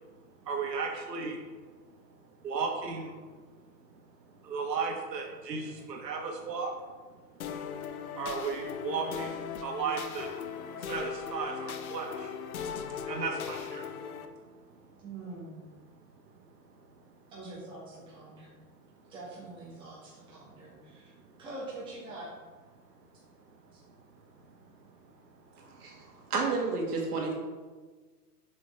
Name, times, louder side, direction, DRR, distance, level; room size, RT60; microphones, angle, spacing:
voice 1, 0.4-1.4 2.4-3.1 4.4-6.7 8.1-10.3 10.8-12.3 13.1-13.9, right 5 dB, 80° right, 1 dB, 1.4 m, -34 dB
sound 1, 7.4-14.2, left 7 dB, 60° left, 0.7 m, -38 dB
voice 2, 15.0-15.6 17.3-18.5 19.1-21.1 21.4-22.3 23.7-23.8, right 2 dB, 10° right, -8 dB, 1.7 m, -44 dB
voice 3, 26.3-27.3, right 4 dB, 65° right, 0 dB, 1.9 m, -30 dB
7.5 x 5.5 x 3.3 m, 1.4 s
hypercardioid pair, 165°, 49 cm